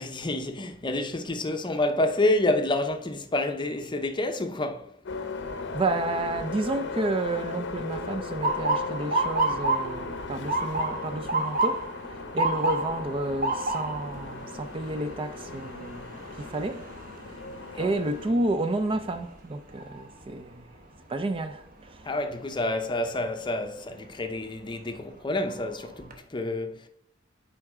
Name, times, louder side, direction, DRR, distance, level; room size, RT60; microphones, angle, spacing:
voice 1, 0.0-5.0 17.7-18.0 22.0-26.9, left 2 dB, 25° left, 0.6 m, -28 dB
sound 1, 5.1-18.3, left 3 dB, 65° left, 0.7 m, -37 dB
voice 2, 5.7-16.1 16.4-16.8 17.7-20.7 21.1-22.0, right 2 dB, 25° right, 0.4 m, -31 dB
Motor vehicle (road) / Siren, 8.4-20.3 20.8-21.2 22.0-22.3 24.2-24.4 24.9-25.0 25.4-26.1, right 2 dB, 45° right, 1.0 m, -31 dB
7.9 x 4.6 x 3.6 m
head